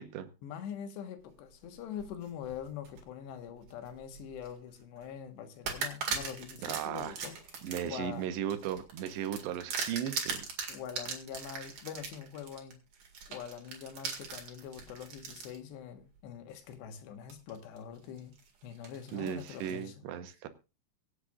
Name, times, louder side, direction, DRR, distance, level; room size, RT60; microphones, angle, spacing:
voice 1, 0.4-7.4 7.8-8.3 10.7-12.8 13.3-18.3 18.6-19.9, left 8 dB, 80° left, 7 dB, 3.5 m, -44 dB
sound 1, 1.8-3.0 3.6-4.5 5.0-5.1 5.7-15.6 16.2-16.3 17.3-17.8 18.2-19.8, right 6 dB, 50° right, 3.0 m, -40 dB
voice 2, 6.6-7.2 7.6-10.5 19.1-20.5, right 10 dB, 85° right, 9 dB, 3.2 m, -36 dB
24.0 x 8.2 x 2.4 m, 0.30 s
omnidirectional pair, 4.9 m